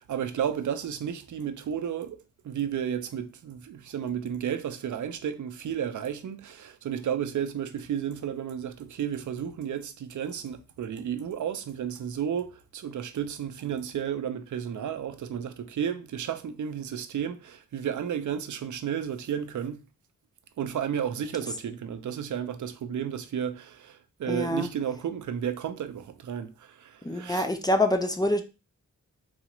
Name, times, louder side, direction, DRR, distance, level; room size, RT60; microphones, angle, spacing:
voice 1, 0.0-19.8 20.6-27.5, right 8 dB, 75° right, 0.5 m, -32 dB
voice 2, 24.3-24.7 27.0-28.4, left 1 dB, 15° left, 0.4 m, -25 dB
4.0 x 2.4 x 2.9 m
wide cardioid pair, 105°, 30 cm